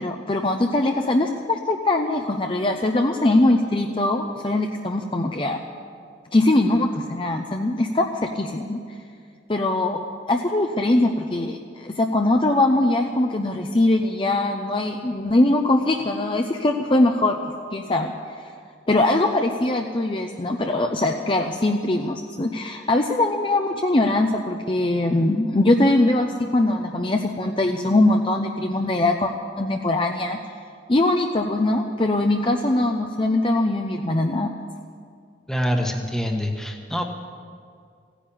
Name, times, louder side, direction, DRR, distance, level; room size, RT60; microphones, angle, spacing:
voice 1, 0.0-5.6 6.3-8.8 9.5-10.0 10.3-17.4 17.7-18.1 18.9-29.3 29.6-30.4 30.9-34.6, left 2 dB, 30° left, 3 dB, 0.6 m, -21 dB
voice 2, 35.5-37.0, equal, 5° left, 3 dB, 1.2 m, -25 dB
15.5 x 10.0 x 8.6 m, 2.3 s
head